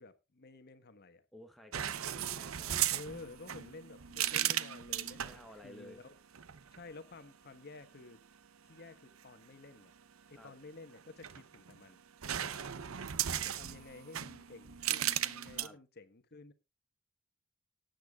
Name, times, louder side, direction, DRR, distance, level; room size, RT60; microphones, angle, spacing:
voice 1, 0.0-1.2 2.9-6.1 6.7-8.2 8.6-9.9 10.3-12.5 13.4-16.5, left 3 dB, 50° left, 1.3 m, -52 dB
voice 2, 1.3-3.2 5.1-6.0 10.4-10.5 12.5-12.7 15.5-15.8, left 1 dB, ahead, 1.0 m, -55 dB
sound 1, 1.7-5.4 6.3-6.8 11.0-11.8 12.2-15.7, right 11 dB, 90° right, 0.7 m, -36 dB
19.0 x 9.2 x 2.4 m
head